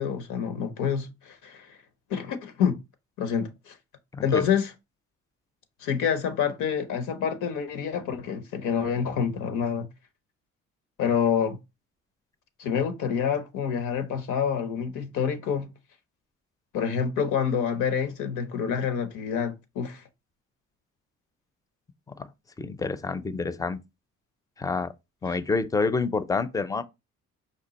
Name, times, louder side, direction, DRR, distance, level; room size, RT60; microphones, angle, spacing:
voice 1, 0.0-1.8 2.1-2.8 3.2-3.7 4.2-4.7 5.8-9.9 11.0-11.6 12.6-15.7 16.7-20.0 25.3-25.4, left 7 dB, 85° left, 0.9 m, -27 dB
voice 2, 4.1-4.4 22.2-22.3 22.6-23.8 24.6-24.9 25.2-26.8, left 4 dB, 10° left, 0.4 m, -28 dB
5.2 x 2.4 x 4.0 m
cardioid pair, 90°, 30 cm